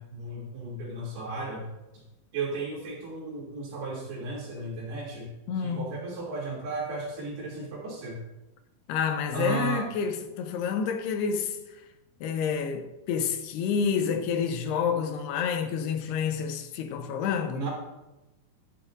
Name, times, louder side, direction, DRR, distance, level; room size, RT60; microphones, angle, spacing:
voice 1, 0.0-1.7 1.9-2.0 2.3-5.3 5.6-8.2 9.3-9.8 17.5-17.7, right 3 dB, 75° right, 4.8 m, -34 dB
voice 2, 5.5-5.9 8.9-11.8 12.2-17.7, left 6 dB, 80° left, 3.0 m, -29 dB
14.0 x 12.0 x 2.6 m
omnidirectional pair, 4.6 m